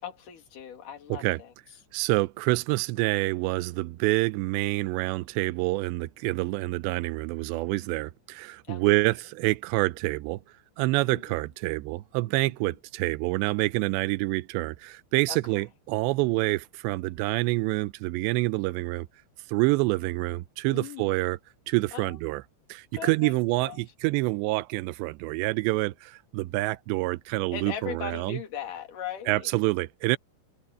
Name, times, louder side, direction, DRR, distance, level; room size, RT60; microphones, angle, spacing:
voice 1, 0.0-1.5 8.7-8.8 10.9-11.4 12.4-12.8 15.3-15.6 20.7-21.1 21.9-22.2 22.9-23.9 27.5-29.5, left 9 dB, 45° left, 3.7 m, -39 dB
voice 2, 1.9-10.4 10.8-19.1 19.5-21.4 21.7-22.4 22.7-28.4 29.3-30.2, right 21 dB, 85° right, 2.5 m, -27 dB
omnidirectional pair, 5.7 m